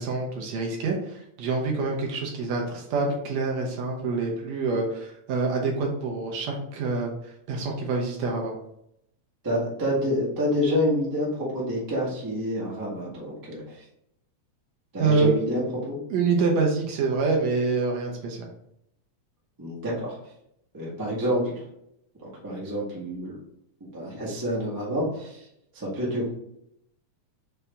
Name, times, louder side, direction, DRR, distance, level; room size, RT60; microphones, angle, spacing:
voice 1, 0.0-8.5 15.0-15.3 16.1-18.5, right 4 dB, 70° right, 0 dB, 1.8 m, -26 dB
voice 2, 9.4-13.8 14.9-16.0 19.6-20.2 20.7-21.6 22.4-23.4 23.8-25.5 25.7-26.3, equal, 20° right, -6 dB, 0.5 m, -28 dB
5.6 x 2.7 x 3.4 m, 0.77 s
omnidirectional pair, 3.4 m